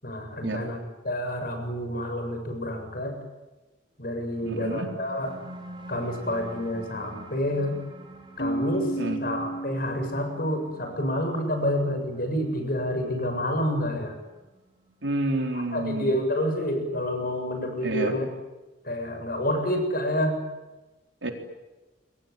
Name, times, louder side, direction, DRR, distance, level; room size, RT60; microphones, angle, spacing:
voice 1, 0.0-0.8 1.0-3.2 4.0-5.3 5.9-7.8 8.4-8.9 9.2-14.1 15.5-18.2 18.8-20.4, equal, 50° left, 5 dB, 7.4 m, -28 dB
sound 1, 4.2-15.2, right 1 dB, 25° right, 5.2 m, -47 dB
voice 2, 4.4-4.9 9.0-9.2 15.0-16.2 17.8-18.1 21.2-21.3, right 1 dB, 75° right, 3 dB, 4.1 m, -29 dB
Keyboard (musical), 8.4-11.0, right 1 dB, 65° left, 2.0 m, -33 dB
26.5 x 23.0 x 9.5 m, 1.1 s
head